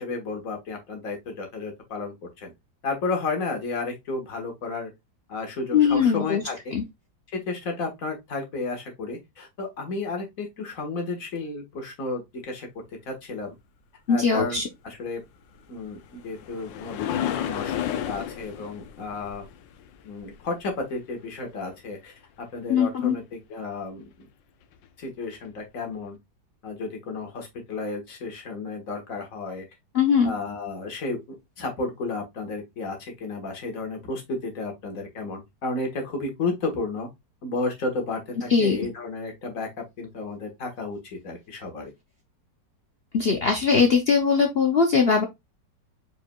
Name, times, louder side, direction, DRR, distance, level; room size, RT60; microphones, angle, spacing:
voice 1, 0.0-2.5 2.8-4.9 5.3-6.7 7.3-12.7 13.0-13.5 14.1-15.2 15.7-19.4 20.0-24.1 25.0-26.2 26.6-29.6 30.2-37.1 37.4-39.7 40.0-41.9, left 3 dB, 50° left, 1.7 m, -32 dB
voice 2, 5.7-6.4 6.7-6.8 14.1-14.6 22.7-23.1 29.9-30.3 38.5-38.8 43.1-45.2, left 6 dB, 65° left, 0.6 m, -20 dB
sound 1, 15.6-20.8 24.7-24.8 25.5-25.6, left 11 dB, 90° left, 1.3 m, -33 dB
4.8 x 4.4 x 2.3 m
omnidirectional pair, 1.9 m